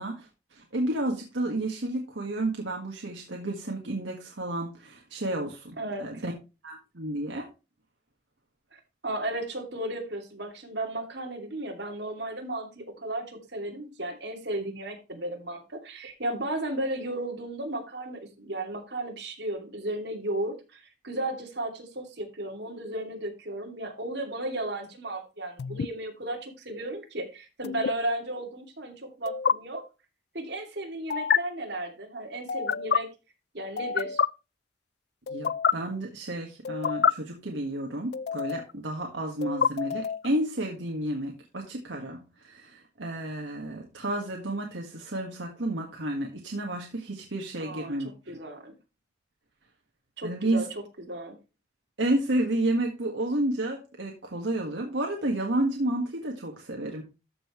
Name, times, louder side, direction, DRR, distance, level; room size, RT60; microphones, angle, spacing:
voice 1, 0.0-6.3 6.6-7.5 35.3-48.1 50.2-50.7 52.0-57.0, right 1 dB, 80° right, 1 dB, 1.7 m, -31 dB
voice 2, 5.8-6.2 8.7-29.8 30.3-33.1 33.5-34.2 47.6-47.9 48.3-48.7 50.2-50.7 51.0-51.4, right 1 dB, 65° right, 2 dB, 2.7 m, -34 dB
sound 1, 25.6-25.9 27.6-27.9 29.3-29.5 31.1-31.4 32.5-33.0 33.8-34.3 35.3-35.7 36.6-37.1 38.1-38.7 39.4-40.3, left 7 dB, 55° left, 0.3 m, -26 dB
13.5 x 5.6 x 3.2 m, 0.28 s
head